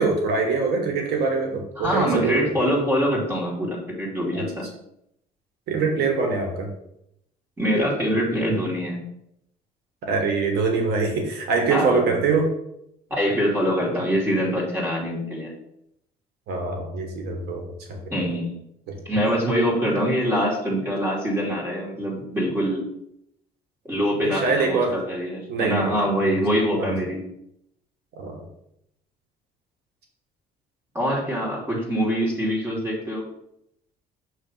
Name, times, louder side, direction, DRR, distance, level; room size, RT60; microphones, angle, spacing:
voice 1, 0.0-2.6 4.3-4.5 5.7-6.7 10.0-12.5 16.5-18.0 18.9-19.0 24.2-25.0 25.5-26.4 26.8-27.0 28.2-28.4, right 4 dB, 75° right, 3 dB, 1.5 m, -24 dB
voice 2, 1.8-4.7 7.6-9.0 11.7-12.1 13.1-15.5 18.1-18.6 19.1-22.8 23.8-27.2 30.9-33.3, equal, 15° right, -5 dB, 2.7 m, -24 dB
6.3 x 3.3 x 5.5 m, 0.78 s
cardioid pair, 110°, 17 cm